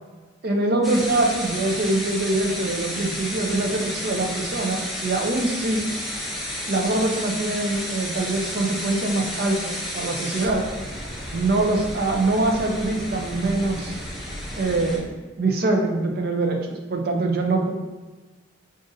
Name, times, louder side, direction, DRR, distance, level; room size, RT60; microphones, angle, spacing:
voice 1, 0.4-5.8 6.7-10.6 11.3-14.0 14.6-17.7, right 2 dB, 50° right, 3 dB, 0.5 m, -24 dB
sound 1, 0.8-15.0, equal, ahead, 0.6 m, -32 dB
5.1 x 2.5 x 2.6 m, 1.3 s
head